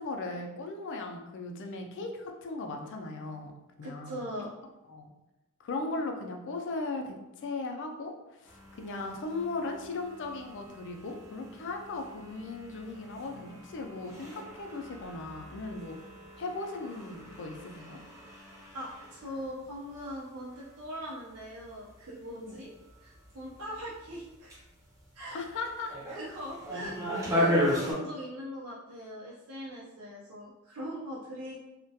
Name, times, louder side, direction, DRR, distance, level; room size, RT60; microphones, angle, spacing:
voice 1, 0.0-3.5 3.8-4.2 4.9-5.1 5.6-8.1 8.4-16.0 16.4-18.0 22.4-22.6 25.3-25.9, left 3 dB, 55° left, 3 dB, 0.4 m, -37 dB
voice 2, 3.8-4.5 18.7-22.7 23.0-24.5 25.1-25.4 26.1-27.0 27.3-31.6, equal, 80° right, -6 dB, 0.5 m, -41 dB
sound 1, 8.5-27.9, left 1 dB, 15° right, 0.5 m, -37 dB
2.2 x 2.1 x 2.7 m, 1.0 s
head